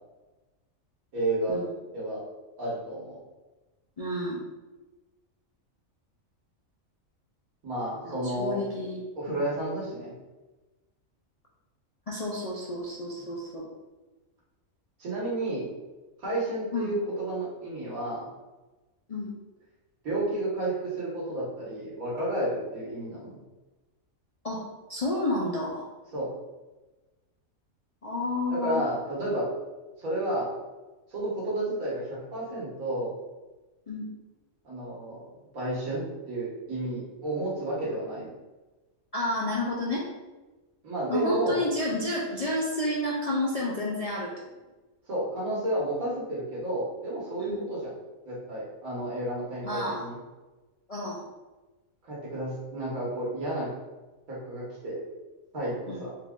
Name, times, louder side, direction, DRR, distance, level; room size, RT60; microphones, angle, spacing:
voice 1, 1.1-1.6 1.9-2.2 2.6-3.2 7.6-8.6 9.2-10.1 15.0-15.7 16.2-18.3 20.0-23.4 26.1-26.3 28.5-29.5 30.0-30.5 31.1-33.1 34.6-38.3 40.8-41.6 45.1-47.9 48.3-50.1 52.0-53.7 54.3-55.0 55.5-56.1, right 1 dB, 90° right, -6 dB, 1.9 m, -31 dB
voice 2, 4.0-4.4 8.0-9.0 9.3-9.4 12.1-13.6 16.7-16.9 19.1-19.4 24.4-24.6 24.9-25.9 28.0-28.8 33.9-34.1 39.1-40.0 41.1-44.3 47.4-47.6 49.6-50.1 50.9-51.2 55.9-56.0, left 1 dB, 50° left, -5 dB, 0.4 m, -30 dB
4.4 x 2.4 x 3.6 m, 1.2 s
omnidirectional pair, 1.4 m